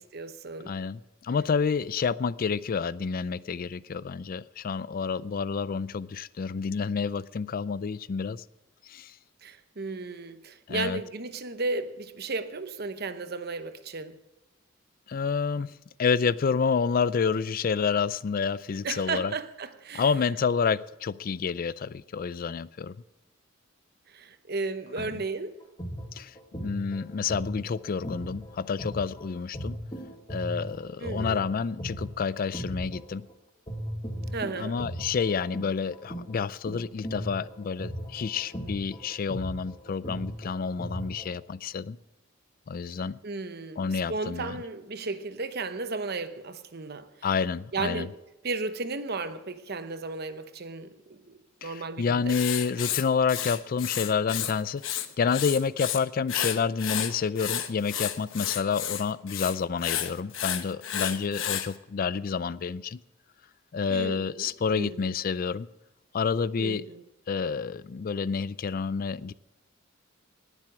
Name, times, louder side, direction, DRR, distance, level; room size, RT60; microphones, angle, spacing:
voice 1, 0.0-0.7 9.4-14.2 18.8-20.1 24.1-25.6 31.0-31.4 34.3-34.8 43.2-43.8 44.1-47.1 47.7-48.1 48.4-50.9 51.3-52.4 63.9-64.5 64.7-65.0 66.6-67.0, right 3 dB, 50° right, 0.9 m, -34 dB
voice 2, 0.7-8.4 8.8-9.1 10.7-11.0 15.1-15.7 16.0-19.3 19.9-23.0 25.0-25.1 26.1-26.3 26.6-29.8 30.3-33.3 34.6-42.0 42.7-43.2 43.8-44.6 47.2-48.1 51.6-63.0 63.7-65.7 66.1-66.8 67.3-69.3, left 5 dB, 45° left, 0.4 m, -29 dB
sound 1, 25.6-33.3 33.7-41.3, equal, 25° left, 2.0 m, -37 dB
Writing, 52.3-54.5 54.8-56.0 56.3-61.7, left 10 dB, 75° left, 1.1 m, -31 dB
19.5 x 7.5 x 6.1 m
head